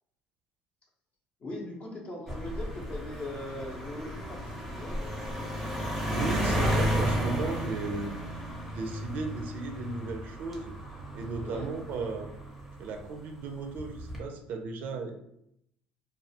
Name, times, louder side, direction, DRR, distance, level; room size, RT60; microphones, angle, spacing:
voice 1, 1.4-4.4 4.7-5.0 11.4-11.7, left 1 dB, 40° left, -1 dB, 0.7 m, -40 dB
sound 1, 2.3-13.0 13.8-14.2, equal, ahead, 0.7 m, -33 dB
voice 2, 6.1-8.2 8.7-10.7 11.1-12.3 12.8-15.1, right 4 dB, 60° right, 5 dB, 0.4 m, -35 dB
2.3 x 2.0 x 2.7 m, 0.75 s
supercardioid pair, 95°, 3 cm